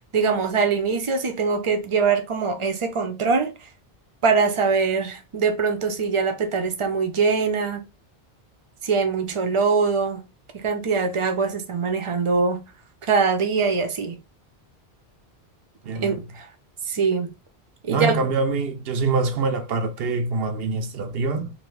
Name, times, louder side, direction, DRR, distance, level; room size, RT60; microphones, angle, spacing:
voice 1, 0.1-3.5 4.2-7.8 8.8-10.2 10.6-12.6 13.0-14.2 15.9-16.5 16.9-17.3 17.8-18.2, right 5 dB, 40° right, 0.5 m, -23 dB
voice 2, 15.8-16.2 17.9-21.5, right 4 dB, 70° right, 0.8 m, -25 dB
2.7 x 2.6 x 3.1 m
omnidirectional pair, 1.1 m